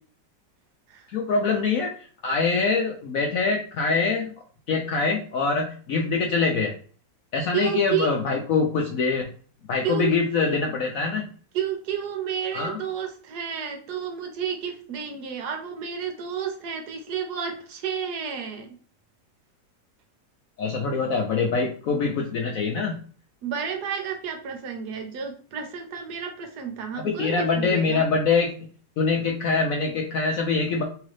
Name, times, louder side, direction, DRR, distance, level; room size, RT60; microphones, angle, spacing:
voice 1, 1.1-1.9 2.2-4.3 4.7-6.7 7.3-9.3 9.7-11.3 12.5-12.8 20.6-23.0 27.0-28.5 29.0-30.8, left 4 dB, 70° left, 1 dB, 0.8 m, -24 dB
voice 2, 7.5-8.1 9.8-10.1 10.4-10.6 11.5-18.7 23.4-28.1, right 8 dB, 70° right, 5 dB, 1.2 m, -31 dB
3.7 x 3.0 x 3.2 m, 0.42 s
omnidirectional pair, 1.9 m